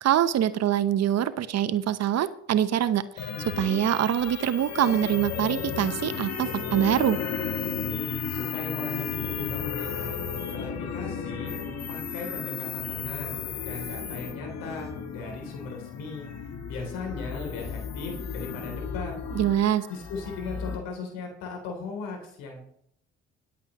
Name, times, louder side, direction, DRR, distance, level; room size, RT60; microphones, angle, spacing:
voice 1, 0.0-7.2 19.3-19.9, right 10 dB, 50° right, 14 dB, 0.9 m, -24 dB
sound 1, 3.2-20.8, left 6 dB, 50° left, 2.0 m, -34 dB
voice 2, 8.3-10.2 10.5-11.6 11.9-16.3 16.7-19.1 19.9-22.6, left 4 dB, 70° left, 3 dB, 3.2 m, -38 dB
20.0 x 8.4 x 3.1 m, 0.70 s
hypercardioid pair, 50°, 34 cm